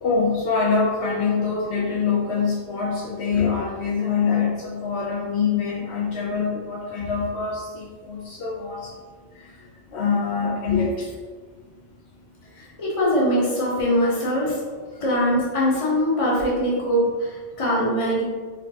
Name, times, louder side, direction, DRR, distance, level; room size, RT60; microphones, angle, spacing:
voice 1, 0.0-8.9 9.9-11.1, left 5 dB, 70° left, -4 dB, 0.8 m, -24 dB
voice 2, 12.6-14.6 15.0-18.2, equal, 30° left, -5 dB, 0.9 m, -22 dB
4.5 x 2.3 x 2.7 m, 1.5 s
omnidirectional pair, 1.2 m